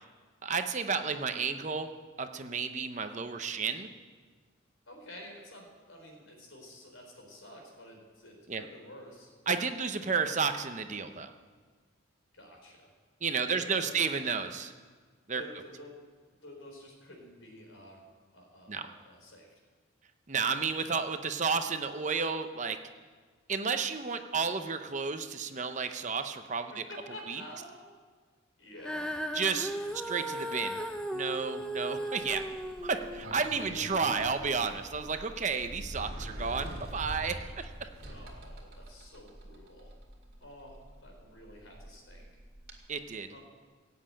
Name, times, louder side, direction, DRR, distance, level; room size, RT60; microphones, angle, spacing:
voice 1, 0.4-1.9 2.2-3.9 8.5-8.6 9.5-11.3 13.2-14.7 15.3-15.4 18.7-18.9 20.3-22.8 23.5-26.8 27.3-27.4 29.3-30.8 31.1-32.4 32.8-37.9 42.9-43.3, right 5 dB, 35° right, 8 dB, 0.7 m, -32 dB
voice 2, 4.9-9.3 12.3-12.9 13.4-13.9 15.3-15.9 16.4-18.0 18.3-19.5 26.9-27.9 28.6-29.1 38.1-39.9 40.4-42.3 43.3-43.4, left 1 dB, 75° left, 1 dB, 4.0 m, -50 dB
Female singing, 28.8-35.1 35.8-35.9, equal, 5° left, 0.7 m, -37 dB
Sliding door, 32.2-42.8, right 1 dB, 50° right, 2.2 m, -45 dB
16.5 x 7.8 x 8.8 m, 1.5 s
head